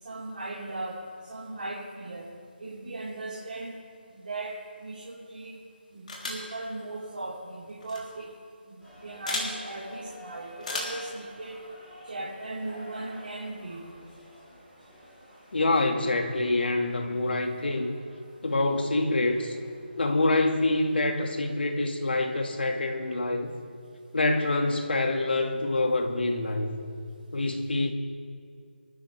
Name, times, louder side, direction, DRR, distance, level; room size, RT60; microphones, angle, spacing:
voice 1, 0.0-1.0 1.3-2.3 2.6-3.7 4.1-5.6 5.9-8.3 8.7-11.6 12.0-13.8 15.7-15.8, right 2 dB, 55° right, -8 dB, 4.6 m, -38 dB
sound 1, 6.1-6.5 7.8-8.0 9.3-9.5 10.6-11.0, left 2 dB, 45° left, 3.7 m, -33 dB
sound 2, 8.8-21.5, equal, ahead, 3.6 m, -51 dB
voice 2, 15.5-18.0 18.4-19.6 20.0-23.5 24.1-26.7 27.3-27.9, left 2 dB, 65° left, 4 dB, 2.3 m, -26 dB
27.5 x 13.5 x 3.5 m, 2.2 s
figure-of-eight pair, 170°, 6 cm